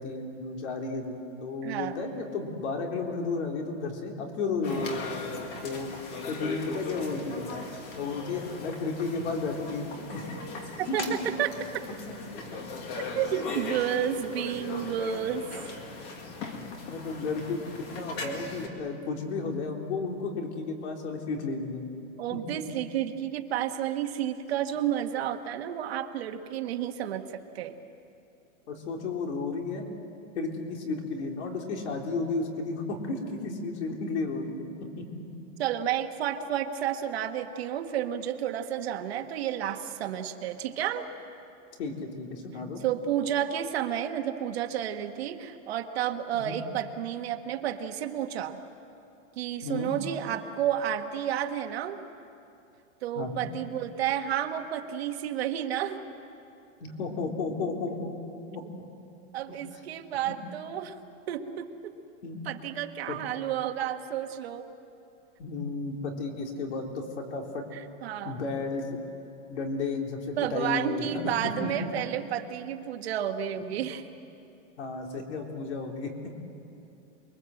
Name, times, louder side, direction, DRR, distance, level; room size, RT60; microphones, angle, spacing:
voice 1, 0.0-4.9 5.6-5.9 6.3-7.5 7.9-9.9 10.1-10.3 10.9-11.1 12.1-12.2 14.3-14.4 16.8-21.9 22.3-22.6 28.7-29.8 30.3-34.7 35.0-35.3 41.8-42.8 46.3-46.6 49.6-49.9 53.2-53.5 56.8-58.2 58.5-58.7 59.5-59.6 60.3-60.4 62.2-62.4 63.1-63.2 65.4-67.7 68.2-68.9 69.5-72.1 74.8-76.1, left 3 dB, 60° left, 2 dB, 3.9 m, -33 dB
voice 2, 1.6-2.0 10.8-11.5 13.1-15.5 22.2-27.7 35.6-41.0 42.8-48.6 49.4-52.0 53.0-56.0 59.3-61.0 61.3-61.9 62.4-64.7 67.7-68.4 70.4-74.0, right 10 dB, 55° right, 6 dB, 1.5 m, -31 dB
sound 1, 4.6-18.7, left 3 dB, 25° left, 2.0 m, -38 dB
28.5 x 22.0 x 7.8 m, 2.7 s
supercardioid pair, 180°, 38 cm